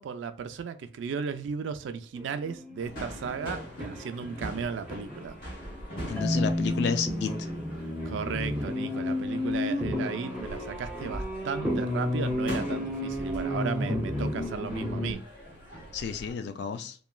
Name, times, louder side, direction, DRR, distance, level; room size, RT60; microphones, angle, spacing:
voice 1, 0.0-5.4 8.0-15.2, right 6 dB, 80° right, 0.3 m, -35 dB
sound 1, 2.2-5.3 5.6-15.1, left 1 dB, 5° right, 0.5 m, -32 dB
sound 2, 2.8-16.3, equal, 45° left, 1.3 m, -43 dB
voice 2, 6.1-7.3 15.9-16.9, left 6 dB, 60° left, 0.3 m, -31 dB
Marimba xylophone, 6.2-9.1, equal, 15° left, 1.3 m, -33 dB
3.0 x 2.3 x 2.3 m
head